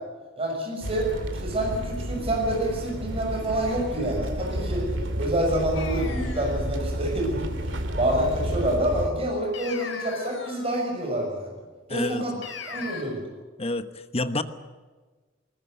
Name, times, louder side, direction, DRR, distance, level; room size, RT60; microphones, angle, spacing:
voice 1, 0.4-1.1 1.4-4.8 5.2-7.5 8.0-11.5 11.9-12.3 12.7-13.2, right 1 dB, 30° right, 0 dB, 6.4 m, -27 dB
sound 1, 0.8-9.1, equal, 70° right, 2.5 m, -31 dB
sound 2, 5.7-6.7 9.5-10.8 12.4-13.0, left 5 dB, 75° left, 3.5 m, -38 dB
voice 2, 11.9-12.4 13.6-14.4, left 2 dB, 30° left, 11 dB, 1.1 m, -29 dB
20.5 x 19.5 x 7.9 m, 1.4 s
head